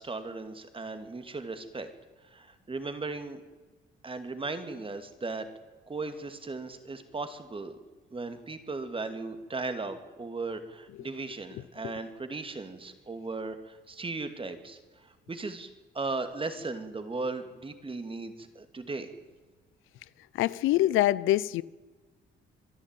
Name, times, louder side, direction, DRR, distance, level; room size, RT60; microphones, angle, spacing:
voice 1, 0.0-1.9 2.3-3.4 4.0-5.4 5.9-7.8 8.1-15.7 15.9-19.1, right 3 dB, 25° right, 2.5 m, -37 dB
voice 2, 20.4-21.6, left 15 dB, 90° left, 0.6 m, -24 dB
25.0 x 11.5 x 9.2 m
cardioid pair, 90°, 20 cm